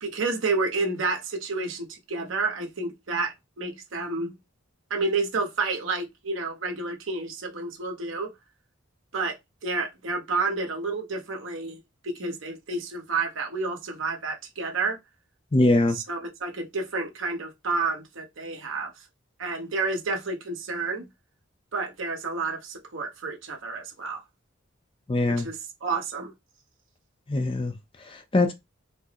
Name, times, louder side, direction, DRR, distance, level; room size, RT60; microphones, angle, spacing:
voice 1, 0.0-4.3 4.9-8.3 9.1-9.4 9.6-11.8 12.0-15.0 15.9-18.9 19.4-21.1 21.7-24.2 25.3-26.3, right 3 dB, 65° right, 0.9 m, -30 dB
voice 2, 15.5-16.0 25.1-25.5 27.3-27.7 28.1-28.5, left 2 dB, 25° left, 0.5 m, -22 dB
4.4 x 2.0 x 2.9 m
head